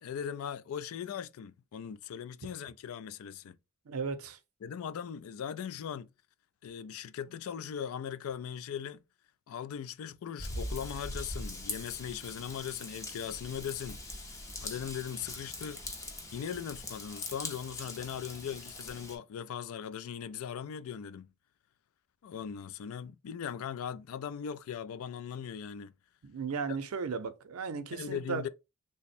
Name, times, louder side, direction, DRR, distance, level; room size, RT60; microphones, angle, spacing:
voice 1, 0.0-3.6 4.6-6.1 6.6-9.0 9.5-14.0 14.6-15.8 16.3-21.3 22.2-25.9 27.9-28.5, left 8 dB, 75° left, 0.3 m, -39 dB
voice 2, 3.9-4.4 26.2-28.5, right 5 dB, 80° right, 0.5 m, -36 dB
Raindrop / Vehicle horn car horn honking / Trickle dribble, 10.4-19.2, left 1 dB, 15° left, 0.5 m, -42 dB
3.4 x 2.1 x 4.1 m
head